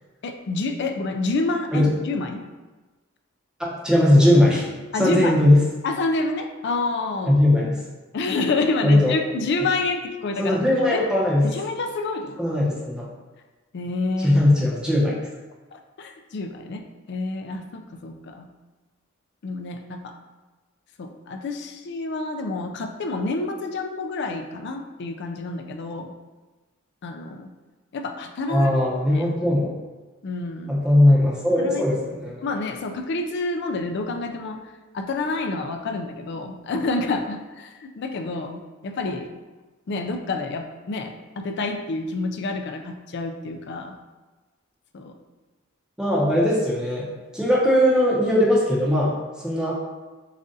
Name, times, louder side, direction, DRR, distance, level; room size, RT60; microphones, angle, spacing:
voice 1, 0.2-2.4 4.9-5.4 5.8-7.3 8.1-10.6 10.9-11.0 11.4-12.4 13.7-14.4 15.7-18.5 19.4-20.1 21.0-26.1 27.0-27.5 27.9-28.7 29.1-29.3 30.2-30.8 31.6-31.8 32.4-34.6 34.9-39.3 39.9-44.0 44.9-45.1, left 3 dB, 50° left, 6 dB, 0.4 m, -28 dB
voice 2, 3.6-4.7 5.0-5.7 7.3-7.8 8.8-9.1 10.4-11.5 12.4-13.1 14.2-15.1 28.5-29.7 30.7-32.4 46.0-49.1 49.4-49.7, left 1 dB, 5° right, -5 dB, 0.8 m, -19 dB
7.3 x 2.4 x 2.7 m, 1.2 s
head